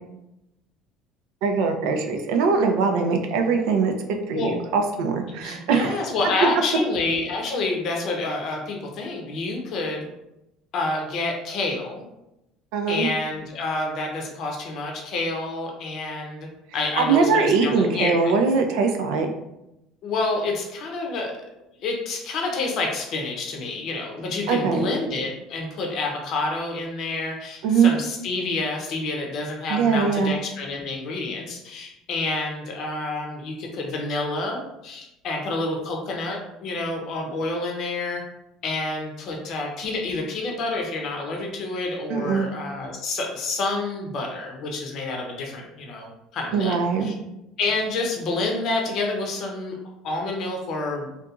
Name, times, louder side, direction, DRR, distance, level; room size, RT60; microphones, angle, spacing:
voice 1, 1.4-3.9 4.3-5.9 12.7-13.1 17.0-19.3 24.5-24.9 27.6-27.9 29.7-30.3 42.1-42.5 46.5-47.1, right 5 dB, 80° right, 4 dB, 0.4 m, -21 dB
voice 2, 5.3-10.1 10.7-12.0 12.9-16.5 16.7-18.3 20.0-21.3 21.8-38.2 38.6-46.8 47.0-47.1 47.6-49.7 50.0-51.1, left 3 dB, 60° left, 1 dB, 0.6 m, -28 dB
2.8 x 2.4 x 2.4 m, 0.89 s
supercardioid pair, 105°, 0 cm